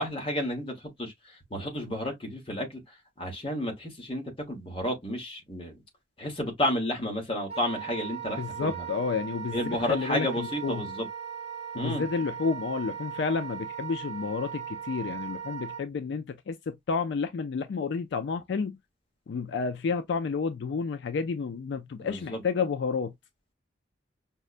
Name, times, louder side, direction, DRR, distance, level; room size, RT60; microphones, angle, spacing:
voice 1, 0.0-2.8 3.2-5.8 6.2-8.9 9.5-11.1 11.8-12.0 22.1-22.4, left 1 dB, 30° left, 1.1 m, -31 dB
Wind instrument woodwind instrument, 7.5-15.8, right 8 dB, 35° right, 0.6 m, -38 dB
voice 2, 8.4-10.9 11.7-18.8 19.3-23.1, left 5 dB, 70° left, 0.3 m, -30 dB
5.3 x 2.1 x 2.4 m
head